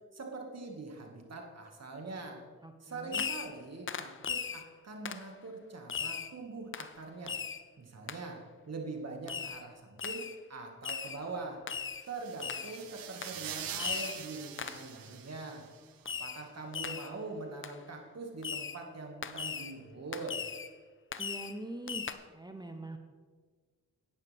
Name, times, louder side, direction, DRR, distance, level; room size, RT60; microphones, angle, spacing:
voice 1, 0.1-2.4 2.8-7.4 7.8-8.4 8.7-11.6 12.1-15.7 16.0-20.4, right 3 dB, 50° right, 2 dB, 2.2 m, -43 dB
voice 2, 2.6-3.2 21.2-22.1 22.3-23.0, right 2 dB, 10° right, 5 dB, 1.0 m, -43 dB
Fireworks, 3.1-3.6 3.9-4.6 5.1-5.3 5.9-6.3 6.7-6.9 7.3-7.6 8.1-8.2 9.3-9.6 10.0-10.4 10.8-11.2 11.7-12.1 12.4-12.8 13.2-13.4 13.8-14.2 14.6-14.9 16.1-16.5 16.7-17.1 17.6-17.8 18.4-18.8 19.2-19.7 20.1-20.7 21.1-21.6 21.9-22.1, left 6 dB, 40° left, 0.7 m, -38 dB
sound 1, 12.0-15.9, right 10 dB, 90° right, 0.8 m, -44 dB
11.0 x 9.6 x 3.6 m, 1.5 s
cardioid pair, 60°, 33 cm